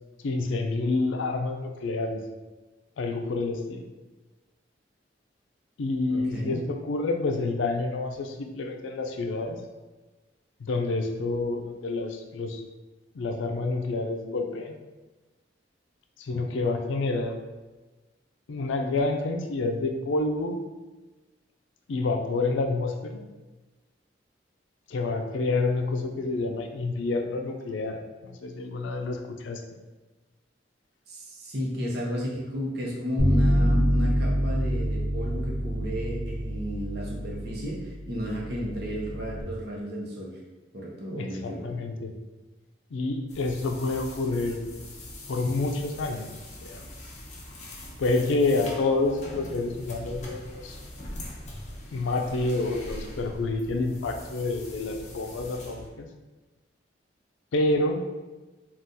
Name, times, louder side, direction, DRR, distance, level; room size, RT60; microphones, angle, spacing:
voice 1, 0.2-2.2 3.0-3.9 5.8-9.6 10.6-12.6 13.1-14.8 16.2-17.4 18.5-20.6 21.9-23.2 24.9-29.6 41.2-42.1 42.9-44.8 45.3-46.3 46.6-46.8 48.0-50.8 51.9-56.1 57.5-58.1, left 3 dB, 85° left, 4 dB, 0.4 m, -28 dB
voice 2, 6.1-6.6 31.1-40.4 40.7-41.6, equal, 55° right, -3 dB, 0.7 m, -33 dB
Bass guitar, 33.2-39.4, equal, 15° right, 1.4 m, -26 dB
sound 1, 43.3-55.9, left 1 dB, 40° left, 0.6 m, -42 dB
3.6 x 2.3 x 2.7 m, 1.2 s
head